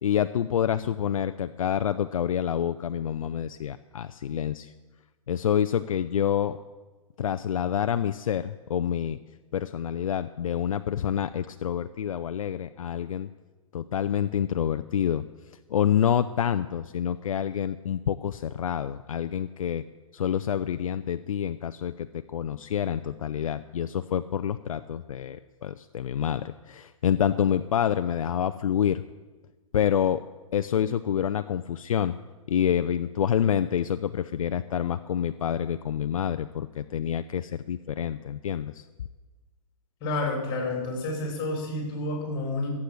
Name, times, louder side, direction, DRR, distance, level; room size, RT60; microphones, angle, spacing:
voice 1, 0.0-4.7 5.3-6.6 7.2-9.2 9.5-13.3 13.7-15.2 15.7-19.8 20.1-29.0 29.7-30.2 30.5-32.2 32.5-38.8, left 9 dB, 70° left, 11 dB, 0.6 m, -27 dB
voice 2, 40.0-42.7, left 2 dB, 25° left, 0 dB, 6.1 m, -30 dB
14.5 x 8.5 x 7.8 m, 1.3 s
hypercardioid pair, 140°, 18 cm